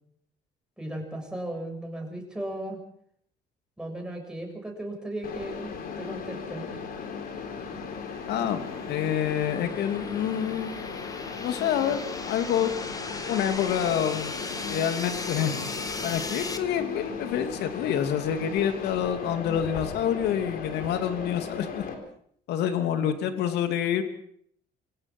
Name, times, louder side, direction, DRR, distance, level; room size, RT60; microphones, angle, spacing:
voice 1, 0.8-2.8 3.8-6.6, right 1 dB, 5° right, 1 dB, 7.2 m, -36 dB
Mechanisms, 5.2-21.9, left 6 dB, 60° left, 4.0 m, -37 dB
sound 1, 7.6-16.6, left 3 dB, 20° left, 2.0 m, -38 dB
voice 2, 8.3-10.8 11.4-12.7 13.3-14.3 14.7-15.7 16.0-21.8 22.5-24.0, left 9 dB, 80° left, 8 dB, 2.7 m, -27 dB
26.0 x 17.0 x 6.2 m, 0.64 s
cardioid pair, 110°, 17 cm